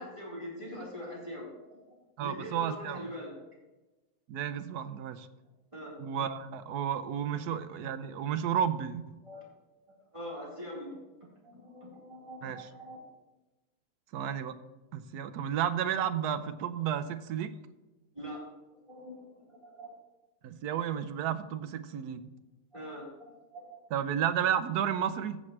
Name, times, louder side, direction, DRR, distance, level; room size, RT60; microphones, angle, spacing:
voice 1, 0.0-3.4 5.7-5.9 9.2-9.4 10.1-11.0 11.4-13.0 18.1-18.4 18.7-19.9 22.7-23.8, equal, 20° right, -7 dB, 4.2 m, -43 dB
voice 2, 2.2-3.0 4.3-5.3 6.0-9.0 12.4-12.6 14.1-14.5 14.9-17.6 20.4-22.3 23.9-25.4, right 9 dB, 85° right, 12 dB, 1.2 m, -32 dB
15.0 x 7.3 x 3.3 m, 1.1 s
omnidirectional pair, 1.6 m